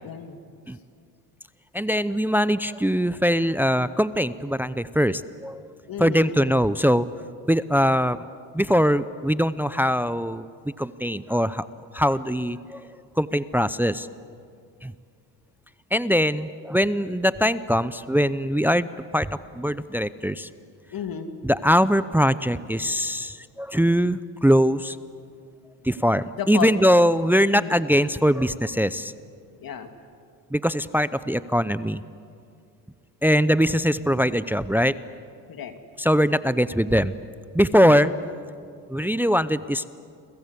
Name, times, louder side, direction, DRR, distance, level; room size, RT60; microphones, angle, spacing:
voice 1, 0.0-0.4 5.9-6.4 20.9-21.3 26.4-26.7 27.5-27.8 29.6-29.9 35.5-35.7 37.7-38.2, left 7 dB, 50° left, 7 dB, 2.6 m, -32 dB
voice 2, 1.7-5.6 6.0-7.1 7.5-8.2 8.5-10.5 10.8-11.6 11.9-12.8 13.2-14.1 14.8-14.9 15.9-18.9 19.1-20.5 21.4-25.0 25.8-29.1 30.5-32.0 33.2-35.0 36.0-37.1 37.5-38.1 38.9-39.9, equal, 5° right, 16 dB, 0.7 m, -22 dB
29.5 x 23.5 x 8.3 m, 2.3 s
supercardioid pair, 75°, 45 cm